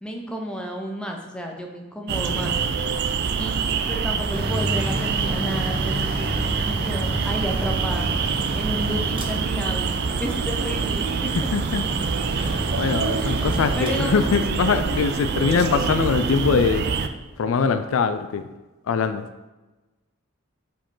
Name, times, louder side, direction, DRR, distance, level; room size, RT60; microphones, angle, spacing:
voice 1, 0.0-2.6 3.4-8.1 8.5-11.3 13.2-13.4 13.8-14.2, equal, 5° left, 1 dB, 0.6 m, -32 dB
sound 1, 2.1-17.1, right 5 dB, 50° right, 0.3 m, -25 dB
Mechanical fan, 4.3-17.7, equal, 25° right, 0.8 m, -32 dB
voice 2, 11.5-11.8 12.4-16.8 17.4-18.4 18.9-19.2, left 5 dB, 70° left, 11 dB, 0.4 m, -22 dB
7.4 x 4.6 x 3.8 m, 1.1 s
head